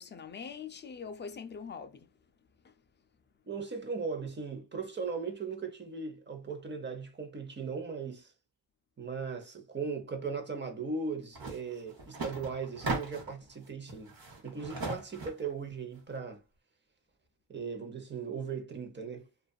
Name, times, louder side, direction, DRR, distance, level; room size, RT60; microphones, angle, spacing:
voice 1, 0.0-2.1 2.6-2.7, left 6 dB, 25° left, 0.3 m, -43 dB
voice 2, 3.5-8.3 9.0-14.1 14.4-16.4 17.5-19.3, right 5 dB, 25° right, 0.7 m, -38 dB
sound 1, 11.3-11.6 11.9-13.4 13.9-15.5, right 3 dB, 55° right, 1.1 m, -37 dB
2.6 x 2.4 x 2.3 m
cardioid pair, 90°, 45 cm